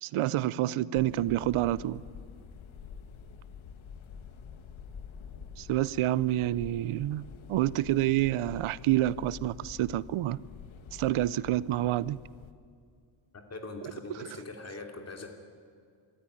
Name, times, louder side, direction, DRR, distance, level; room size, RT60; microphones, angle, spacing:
voice 1, 0.0-2.0 5.6-7.2 7.5-10.4 10.9-12.2, right 14 dB, 85° right, 0.7 m, -28 dB
sound 1, 0.9-12.5, left 6 dB, 70° left, 1.6 m, -47 dB
voice 2, 13.5-15.3, left 3 dB, 30° left, 2.9 m, -42 dB
25.0 x 14.0 x 9.9 m
wide cardioid pair, 155°, 49 cm